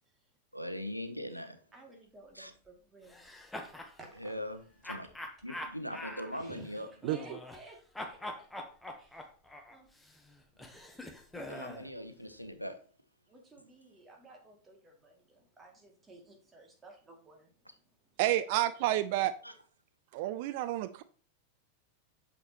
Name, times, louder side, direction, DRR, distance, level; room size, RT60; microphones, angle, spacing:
voice 1, 0.5-1.6 2.3-2.5 4.2-5.1 5.4-6.9 11.3-12.8 19.4-19.5, equal, 90° left, 0.8 m, -40 dB
voice 2, 1.7-3.3 4.0-4.4 6.3-6.7 7.1-8.5 9.0-9.3 9.7-9.9 13.3-17.7 18.0-18.1, right 2 dB, 15° right, 2.4 m, -55 dB
sound 1, 3.1-3.9 4.8-7.7 7.9-11.9, left 1 dB, 5° left, 1.1 m, -44 dB
voice 3, 7.0-7.4 18.2-19.3 20.1-21.0, right 14 dB, 50° right, 0.4 m, -30 dB
8.4 x 6.6 x 3.0 m
figure-of-eight pair, 90°, 0 cm